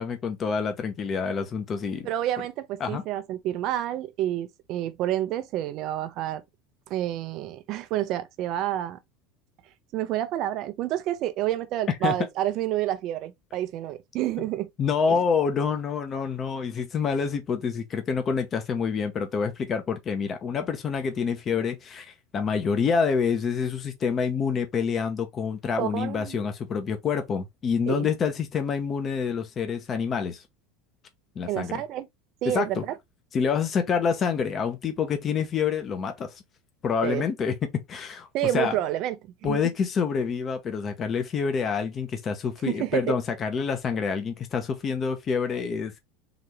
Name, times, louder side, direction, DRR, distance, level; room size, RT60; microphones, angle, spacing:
voice 1, 0.0-2.1 2.8-3.0 12.0-12.1 14.8-30.4 31.3-31.8 32.5-32.8 33.3-36.4 36.8-37.5 37.9-38.3 38.5-38.7 39.4-45.9, left 6 dB, 35° left, 0.9 m, -27 dB
voice 2, 2.0-6.4 6.9-9.0 9.9-14.7 15.1-15.2 25.8-26.5 27.9-28.1 31.4-32.1 32.4-32.9 37.0-37.2 38.3-39.2 39.4-39.6 42.7-43.2, right 13 dB, 55° right, 0.7 m, -29 dB
4.0 x 2.8 x 3.2 m
hypercardioid pair, 85°, 0 cm